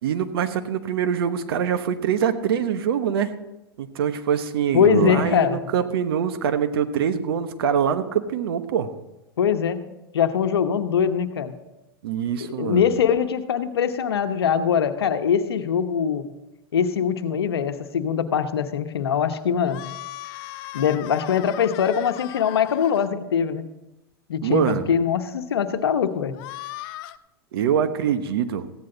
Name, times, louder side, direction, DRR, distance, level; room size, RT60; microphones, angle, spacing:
voice 1, 0.0-3.3 3.8-8.9 12.0-12.9 24.4-24.9 27.5-28.7, right 8 dB, 75° right, 10 dB, 1.1 m, -24 dB
voice 2, 4.7-5.6 9.4-9.8 10.1-11.5 12.6-16.2 16.7-19.8 20.7-23.7 24.3-26.4, left 8 dB, 85° left, 9 dB, 1.0 m, -22 dB
sound 1, 19.7-23.1 26.3-27.2, left 17 dB, 55° left, 0.5 m, -38 dB
15.0 x 9.7 x 3.9 m, 0.96 s
hypercardioid pair, 110°, 13 cm